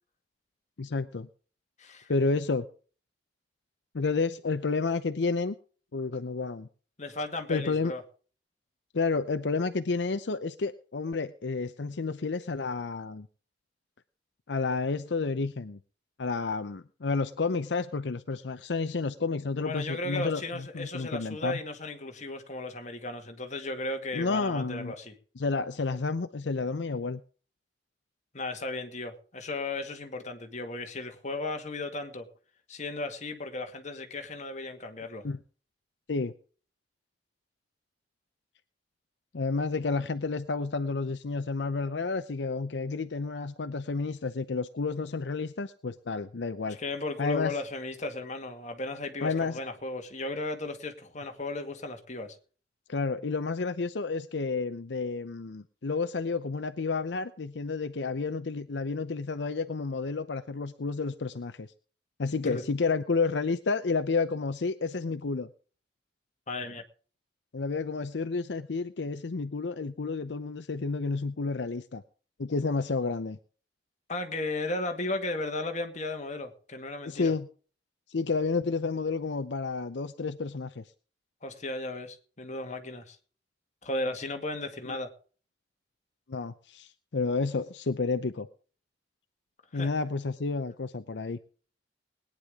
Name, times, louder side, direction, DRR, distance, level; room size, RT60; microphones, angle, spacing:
voice 1, 0.8-1.3 2.1-2.7 3.9-5.6 5.9-6.7 7.5-7.9 8.9-13.3 14.5-15.8 16.2-21.6 24.1-24.9 25.4-27.2 35.2-35.4 36.1-36.3 39.3-46.8 47.2-47.5 49.2-49.6 52.9-61.7 62.2-65.5 67.5-72.0 72.4-73.4 77.0-77.5 78.1-80.8 86.3-88.5 89.7-91.4, left 4 dB, 75° left, 0.7 m, -30 dB
voice 2, 1.8-2.1 7.0-8.0 19.6-25.1 28.3-32.3 32.7-35.2 46.7-52.4 62.4-62.6 66.5-66.8 74.1-77.3 81.4-83.2 83.8-85.1 89.7-89.9, left 2 dB, 45° left, 2.0 m, -35 dB
20.5 x 9.9 x 3.6 m
head